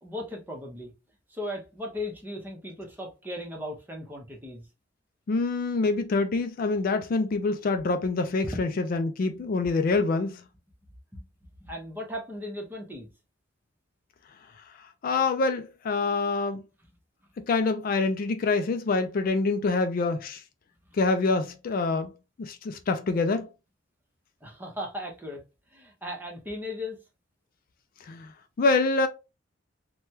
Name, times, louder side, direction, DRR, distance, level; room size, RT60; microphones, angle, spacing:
voice 1, 0.0-0.9 1.3-4.6 8.4-8.6 11.1-11.3 11.6-13.1 24.4-25.4 25.7-27.0, left 1 dB, 10° right, 0.8 m, -37 dB
voice 2, 5.3-10.4 15.0-16.6 17.4-20.4 21.0-22.1 22.4-23.5 28.0-28.3 28.6-29.1, left 3 dB, 50° left, 0.3 m, -26 dB
3.3 x 2.2 x 2.8 m
head